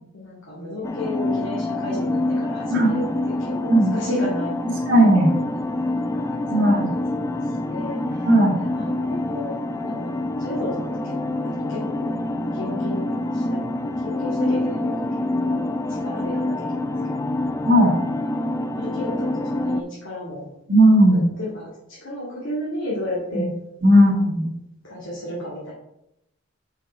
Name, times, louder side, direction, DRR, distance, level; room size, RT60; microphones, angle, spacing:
voice 1, 0.1-4.8 5.3-7.4 7.7-8.3 8.5-9.6 9.8-11.1 11.4-14.9 15.4-15.7 16.0-16.8 18.3-20.4 21.1-23.5 24.0-24.1 24.8-25.7, left 1 dB, 70° left, -7 dB, 2.2 m, -33 dB
sound 1, 0.8-19.8, left 2 dB, 15° left, 0.3 m, -26 dB
voice 2, 4.9-5.3 6.5-6.9 8.2-8.6 17.7-17.9 20.7-21.3 23.3-23.5 23.8-24.5, right 1 dB, 65° right, -4 dB, 2.1 m, -16 dB
6.0 x 5.8 x 4.4 m, 0.85 s
head